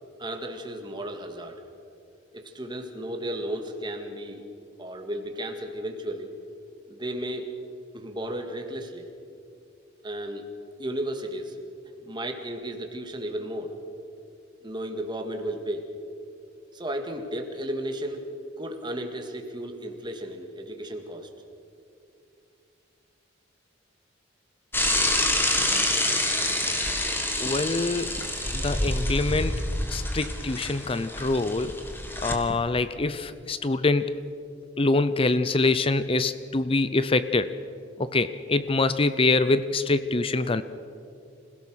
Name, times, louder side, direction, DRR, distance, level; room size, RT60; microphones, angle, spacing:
voice 1, 0.2-1.6 2.3-4.4 4.8-6.3 6.9-7.5 7.9-9.1 10.0-10.5 10.8-11.6 12.0-13.7 14.6-15.8 16.7-18.3 18.6-21.3, right 1 dB, 25° right, 4 dB, 1.9 m, -34 dB
Bicycle / Mechanisms, 24.7-32.3, left 1 dB, 10° left, 1.8 m, -27 dB
voice 2, 27.4-28.1 28.5-29.6 29.9-31.7 32.2-34.1 34.8-37.5 38.0-40.6, left 3 dB, 30° left, 13 dB, 0.5 m, -24 dB
26.5 x 16.5 x 6.3 m, 2.5 s
head